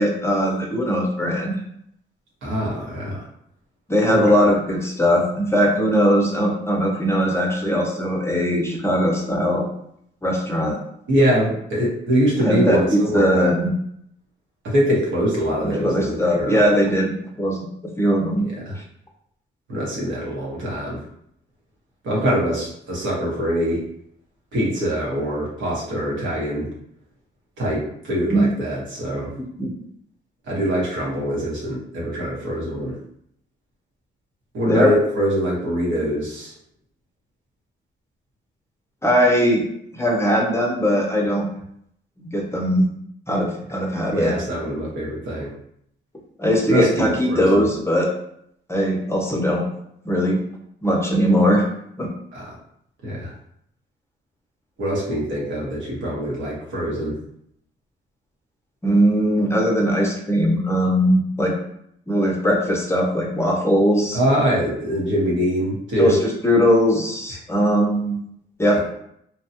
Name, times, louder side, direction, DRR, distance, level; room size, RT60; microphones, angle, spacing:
voice 1, 0.0-1.6 3.9-9.7 10.2-10.8 12.4-13.7 15.6-17.6 18.0-18.5 18.8-18.9 28.3-28.4 29.6-29.7 34.7-34.9 39.0-39.6 39.9-41.5 42.2-42.9 43.3-44.3 46.4-48.1 48.7-49.6 50.1-50.4 50.8-51.7 52.0-52.1 58.8-61.5 62.1-64.2 66.0-66.2 66.4-68.2 68.6-68.8, equal, 15° left, 0 dB, 0.6 m, -20 dB
voice 2, 2.4-3.2 4.1-4.5 11.1-13.5 14.6-16.6 18.4-18.8 19.7-21.0 22.0-23.8 24.5-26.7 27.6-29.3 30.5-33.0 34.5-36.5 44.1-45.5 46.7-47.7 52.3-52.5 53.0-53.3 54.8-57.2 64.1-66.2 68.7-68.8, equal, 70° right, -4 dB, 1.1 m, -23 dB
2.8 x 2.3 x 2.7 m, 0.72 s
cardioid pair, 90°, 20 cm